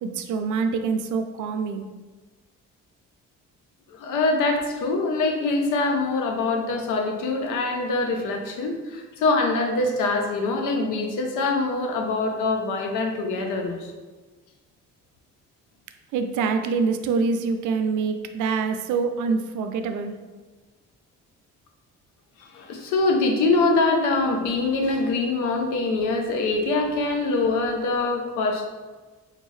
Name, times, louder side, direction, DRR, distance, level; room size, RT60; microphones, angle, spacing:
voice 1, 0.0-1.9 16.1-20.2, right 5 dB, 80° right, 7 dB, 0.4 m, -25 dB
voice 2, 3.9-13.9 22.4-28.7, left 3 dB, 90° left, 2 dB, 0.7 m, -24 dB
3.8 x 2.7 x 3.1 m, 1.3 s
cardioid pair, 90°, 30 cm